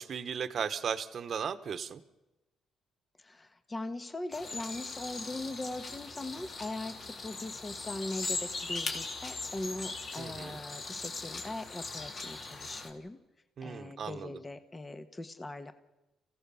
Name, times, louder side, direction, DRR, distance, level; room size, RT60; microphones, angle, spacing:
voice 1, 0.0-2.0 10.2-10.6 13.6-14.4, right 7 dB, 55° right, 12 dB, 1.1 m, -36 dB
voice 2, 3.2-13.2 13.6-15.7, left 2 dB, 25° left, 9 dB, 1.3 m, -40 dB
sound 1, 4.3-12.9, left 3 dB, 50° left, 3.4 m, -40 dB
28.5 x 16.0 x 7.0 m, 1.0 s
cardioid pair, 90°, 0 cm